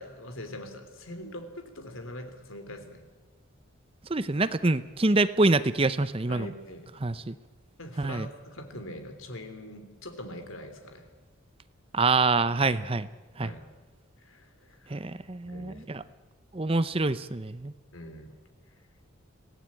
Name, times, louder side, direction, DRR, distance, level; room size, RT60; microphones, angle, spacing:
voice 1, 0.0-3.0 6.3-6.9 7.8-11.1 13.4-13.6 14.2-15.0 15.4-16.1 17.9-18.3, left 1 dB, 85° left, 7 dB, 3.5 m, -43 dB
voice 2, 4.1-6.5 7.0-7.4 8.0-8.3 11.9-13.1 13.4-13.5 14.9-16.0 16.5-17.7, right 3 dB, 25° right, 14 dB, 0.7 m, -26 dB
25.5 x 17.5 x 8.9 m, 1.3 s
head